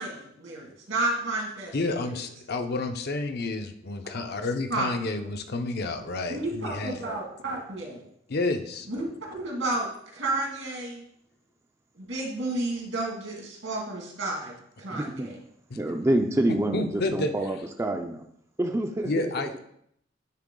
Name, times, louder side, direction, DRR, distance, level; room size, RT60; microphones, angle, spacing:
voice 1, 0.0-2.1 4.7-4.9 6.3-8.0 8.9-9.0 9.3-11.0 12.0-14.5 14.8-15.3, right 2 dB, 80° right, -1 dB, 2.1 m, -31 dB
voice 2, 1.7-7.0 8.3-8.9 15.7-16.0 16.5-17.3 19.0-19.6, left 2 dB, 55° left, 6 dB, 0.7 m, -30 dB
voice 3, 14.9-15.3 15.8-18.2 18.6-19.3, right 1 dB, 15° right, 3 dB, 0.4 m, -27 dB
10.0 x 3.4 x 3.8 m, 0.71 s
head